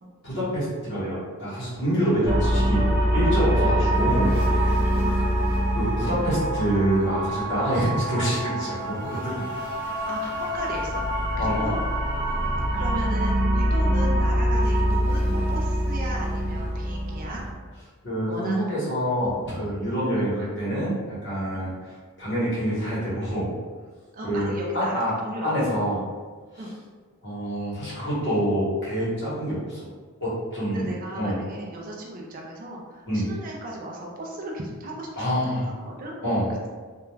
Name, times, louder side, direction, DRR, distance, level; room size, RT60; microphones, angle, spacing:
voice 1, 0.2-2.8 3.1-4.4 5.7-9.3 11.4-11.7 18.0-21.7 22.2-23.5 24.2-25.1 25.4-26.0 27.2-29.9 30.2-30.8 31.1-31.4 33.1-33.3 35.2-35.6 36.2-36.5, equal, 50° left, -8 dB, 1.0 m, -26 dB
sound 1, 2.2-17.5, equal, 10° right, 0.7 m, -24 dB
voice 2, 4.8-5.2 10.1-11.0 11.4-11.8 12.4-12.5 12.7-17.4 18.3-19.0 19.5-19.7 21.5-21.7 24.1-25.7 26.6-26.8 30.7-36.2, right 1 dB, 40° right, -1 dB, 0.4 m, -36 dB
2.3 x 2.2 x 3.1 m, 1.5 s
head